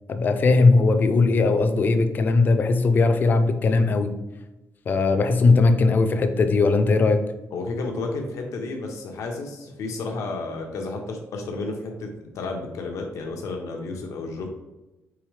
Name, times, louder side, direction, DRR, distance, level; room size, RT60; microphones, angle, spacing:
voice 1, 0.1-4.1 4.9-7.2, left 3 dB, 40° left, 8 dB, 0.4 m, -19 dB
voice 2, 7.5-14.5, left 3 dB, 85° left, 2 dB, 0.7 m, -32 dB
4.7 x 3.1 x 3.2 m, 1.0 s
wide cardioid pair, 165°, 5 cm